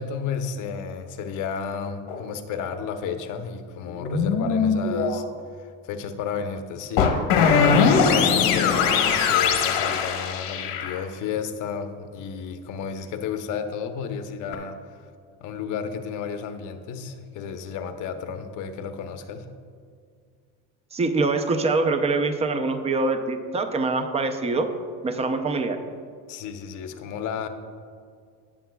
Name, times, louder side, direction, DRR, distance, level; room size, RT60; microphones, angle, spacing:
voice 1, 0.0-5.2 5.6-7.1 7.6-14.8 15.4-19.5 26.3-27.5, left 6 dB, 60° left, 7 dB, 0.8 m, -32 dB
sound 1, 2.1-2.2 3.9-5.2 7.0-11.0 14.5-14.6, left 6 dB, 80° left, 1.2 m, -21 dB
voice 2, 20.9-24.7 25.0-25.8, right 3 dB, 20° right, 8 dB, 0.5 m, -24 dB
17.0 x 7.1 x 2.3 m, 2.2 s
cardioid pair, 145°, 34 cm